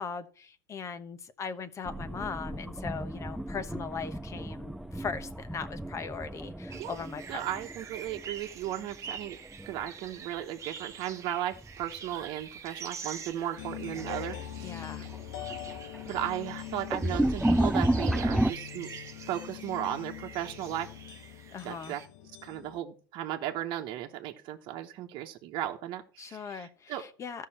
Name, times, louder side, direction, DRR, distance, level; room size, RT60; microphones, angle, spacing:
voice 1, 0.0-7.4 14.6-15.1 21.5-21.9 26.2-27.5, left 6 dB, 25° left, 1.0 m, -39 dB
sound 1, 1.9-8.7 9.0-9.8 11.5-11.9 12.4-12.5 13.5-13.6 14.0-14.4 14.8-18.5, right 1 dB, ahead, 0.3 m, -32 dB
sound 2, 6.7-22.1, right 6 dB, 25° right, 1.1 m, -46 dB
voice 2, 7.3-9.4 9.7-15.1 16.1-18.9 19.3-20.9 21.6-22.0 22.4-27.1, right 12 dB, 50° right, 1.2 m, -36 dB
sound 3, 13.6-22.8, left 13 dB, 70° left, 0.9 m, -43 dB
14.0 x 5.7 x 4.3 m
hypercardioid pair, 105°, 11 cm